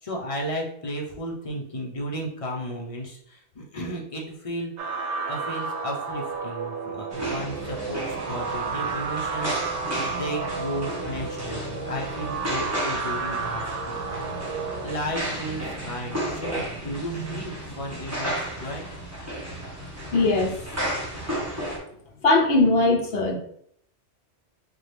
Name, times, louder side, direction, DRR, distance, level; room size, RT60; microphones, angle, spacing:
voice 1, 0.0-4.7 5.3-14.6 14.8-18.9, equal, 30° left, -1 dB, 0.8 m, -34 dB
sound 1, 4.8-14.9, right 5 dB, 85° right, 1.0 m, -32 dB
sound 2, 7.1-21.8, equal, 15° right, 1.1 m, -33 dB
voice 2, 20.1-20.6 22.2-23.3, left 2 dB, 60° left, 1 dB, 1.0 m, -20 dB
3.9 x 3.0 x 3.3 m, 0.66 s
omnidirectional pair, 1.2 m